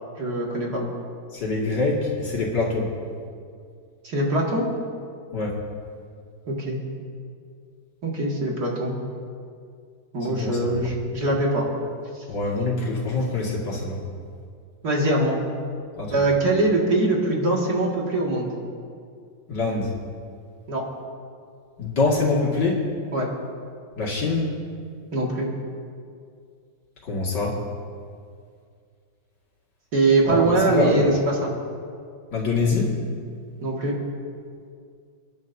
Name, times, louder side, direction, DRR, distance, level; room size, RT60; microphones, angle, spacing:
voice 1, 0.2-0.8 4.0-4.7 6.5-6.8 8.0-8.9 10.1-11.7 14.8-15.4 16.1-18.5 20.7-20.8 23.1-23.3 25.1-25.5 29.9-31.5 33.6-33.9, right 2 dB, 55° right, -2 dB, 2.5 m, -22 dB
voice 2, 1.3-2.9 5.3-5.5 10.3-10.7 12.3-14.0 16.0-16.2 19.5-19.9 21.8-22.8 24.0-24.5 27.0-27.6 30.3-31.1 32.3-32.9, left 3 dB, 65° left, -3 dB, 2.7 m, -24 dB
30.0 x 10.5 x 2.7 m, 2.3 s
omnidirectional pair, 2.1 m